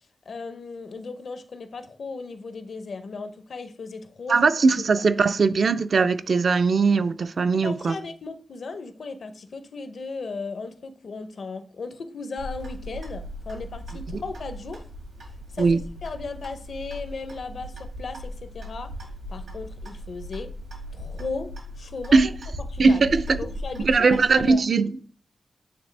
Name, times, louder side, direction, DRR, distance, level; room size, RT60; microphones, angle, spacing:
voice 1, 0.3-4.4 7.5-14.9 15.5-18.9 19.3-20.5 20.9-22.3 22.7-23.0 23.4-24.6, left 4 dB, 65° left, 0.6 m, -36 dB
voice 2, 4.3-8.0 15.6-15.8 22.1-22.3 22.8-23.4 23.8-24.9, right 4 dB, 60° right, 0.4 m, -20 dB
Clock, 12.4-24.5, equal, 85° right, 2.2 m, -38 dB
8.7 x 3.3 x 3.2 m
wide cardioid pair, 110°, 0 cm